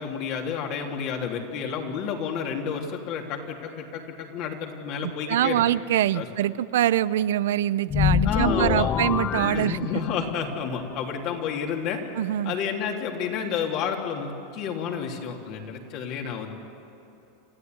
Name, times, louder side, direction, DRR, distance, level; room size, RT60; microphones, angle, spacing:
voice 1, 0.0-5.6 6.1-6.3 8.2-8.9 9.5-12.0 12.4-16.5, left 7 dB, 50° left, 1 dB, 3.3 m, -30 dB
voice 2, 5.0-9.9 12.2-12.5, right 12 dB, 80° right, 17 dB, 0.5 m, -24 dB
sound 1, 7.9-10.4, left 9 dB, 30° left, 0.4 m, -25 dB
28.5 x 14.0 x 9.6 m, 3.0 s
supercardioid pair, 135°, 0 cm